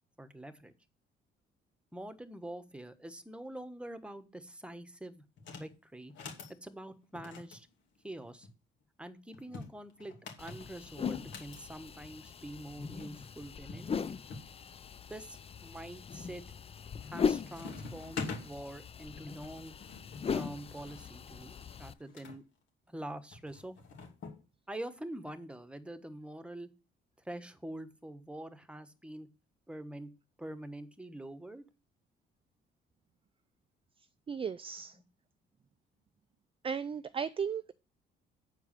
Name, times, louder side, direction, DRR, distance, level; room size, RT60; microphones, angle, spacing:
voice 1, 0.2-0.7 1.9-5.2 5.6-6.1 6.6-7.7 8.0-8.5 9.0-14.1 15.1-16.4 17.0-19.7 20.3-22.4 22.9-23.8 24.7-26.7 27.2-29.3 29.7-30.1 30.4-31.6 34.9-35.0, right 1 dB, 5° right, 1.2 m, -45 dB
sound 1, 5.4-5.7 6.1-6.6 7.2-8.5 9.3-11.6 12.7-12.8 13.0-13.1 13.7-14.5 15.0-15.6 16.1-16.5 16.8-17.2 17.5-18.5 19.4-22.4 23.3-24.4, left 4 dB, 65° left, 2.8 m, -45 dB
sound 2, 10.4-21.9, left 6 dB, 30° left, 0.5 m, -39 dB
voice 2, 34.3-34.9 36.6-37.7, right 6 dB, 25° right, 0.5 m, -35 dB
8.2 x 4.7 x 7.4 m
cardioid pair, 90°, 20 cm